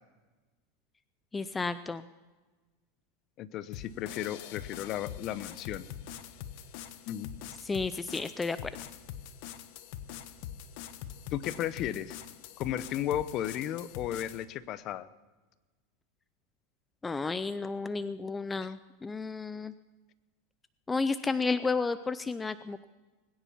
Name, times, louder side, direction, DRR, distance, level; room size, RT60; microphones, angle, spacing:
voice 1, 1.3-2.0 7.6-8.7 17.0-19.7 20.9-22.8, left 4 dB, 15° left, 13 dB, 0.5 m, -32 dB
voice 2, 3.4-5.9 7.1-7.3 11.3-12.2 12.6-15.1, left 11 dB, 45° left, 16 dB, 0.8 m, -34 dB
sound 1, 3.7-14.4, left 10 dB, 60° left, 1.2 m, -44 dB
21.0 x 10.0 x 5.7 m, 1.3 s
supercardioid pair, 125°, 0 cm